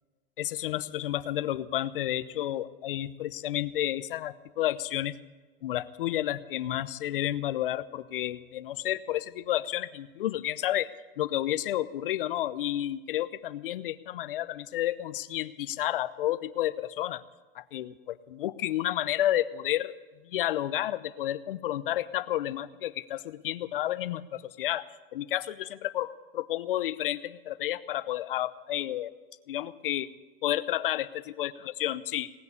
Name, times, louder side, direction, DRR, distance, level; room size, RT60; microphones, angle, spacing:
voice 1, 0.4-5.2 5.6-10.9 11.2-17.2 17.5-19.9 20.2-24.9 25.1-29.1 29.5-30.1 30.4-31.5 31.8-32.3, left 13 dB, 65° left, 15 dB, 0.8 m, -31 dB
18.5 x 6.9 x 9.8 m, 1.3 s
supercardioid pair, 175°, 30 cm